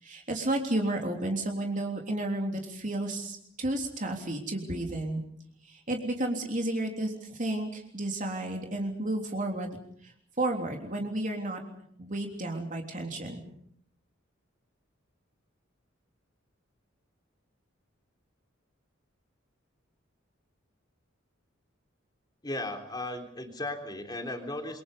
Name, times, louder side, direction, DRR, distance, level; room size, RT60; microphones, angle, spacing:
voice 1, 0.0-5.2 5.7-9.8 10.0-11.6 12.0-13.4, right 1 dB, 40° right, 2 dB, 3.4 m, -32 dB
voice 2, 22.4-24.8, left 1 dB, 20° left, 5 dB, 3.5 m, -36 dB
27.0 x 23.5 x 5.5 m, 0.66 s
head